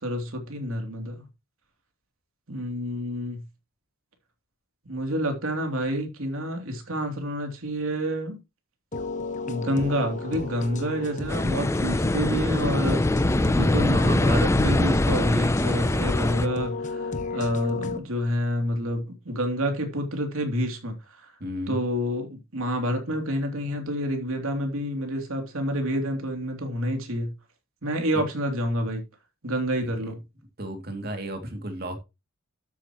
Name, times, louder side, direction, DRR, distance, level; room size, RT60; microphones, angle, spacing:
voice 1, 0.0-1.2 2.5-3.4 4.9-8.4 9.5-13.0 13.6-21.0 21.2-21.3 21.7-27.3 27.8-29.0 29.4-30.2, equal, 75° right, 3.0 m, -28 dB
sound 1, 8.9-18.0, left 3 dB, 35° left, 1.1 m, -34 dB
sound 2, 11.3-16.5, left 1 dB, 15° left, 0.4 m, -23 dB
voice 2, 13.2-13.7 21.4-21.8 28.1-28.2 29.8-29.9 30.6-32.0, equal, 45° right, 2.6 m, -34 dB
12.5 x 8.5 x 3.0 m
head